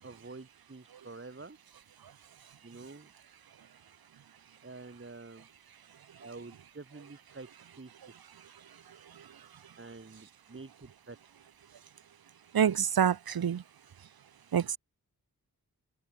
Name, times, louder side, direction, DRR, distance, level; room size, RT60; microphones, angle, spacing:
voice 1, 0.0-1.6 2.6-3.1 4.6-5.5 6.2-7.5 7.8-7.9 9.8-11.2, right 3 dB, 35° right, 7.4 m, -48 dB
voice 2, 12.5-13.6 14.5-14.8, right 8 dB, 90° right, 1.3 m, -26 dB
open air
wide cardioid pair, 85°, 35 cm